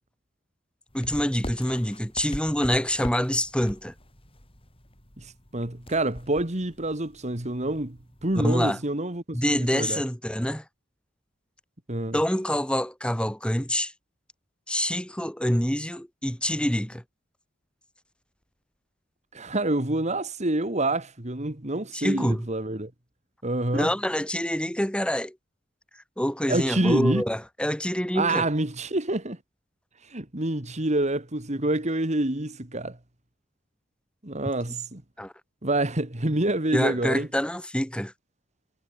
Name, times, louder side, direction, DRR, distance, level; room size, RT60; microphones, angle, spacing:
sound 1, 0.9-8.7, left 1 dB, 30° left, 7.9 m, -43 dB
voice 1, 0.9-3.9 8.3-8.8 9.3-10.6 12.1-13.9 14.7-17.0 21.9-22.5 23.7-25.4 26.2-28.5 35.2-35.3 36.7-38.1, equal, 5° left, 4.6 m, -26 dB
voice 2, 5.2-10.0 11.9-12.2 19.3-22.9 23.4-23.9 26.5-27.2 28.1-29.4 30.0-33.0 34.2-35.0 35.6-37.3, right 2 dB, 35° right, 2.5 m, -27 dB
head